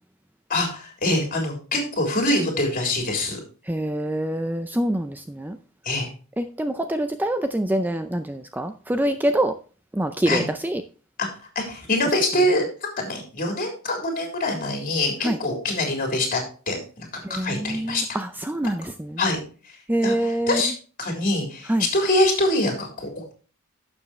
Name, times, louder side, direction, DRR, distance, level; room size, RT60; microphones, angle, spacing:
voice 1, 0.5-3.4 5.9-6.1 10.3-10.4 11.2-11.3 11.6-16.4 16.7-18.0 19.2-19.4 20.0-20.7 21.0-23.3, left 1 dB, 40° left, 1 dB, 3.6 m, -24 dB
voice 2, 3.7-5.6 6.4-9.5 9.9-10.8 15.2-15.4 17.2-19.2 19.9-20.6 21.7-21.9, right 1 dB, 10° right, 8 dB, 0.5 m, -25 dB
11.5 x 7.2 x 3.1 m, 0.37 s
head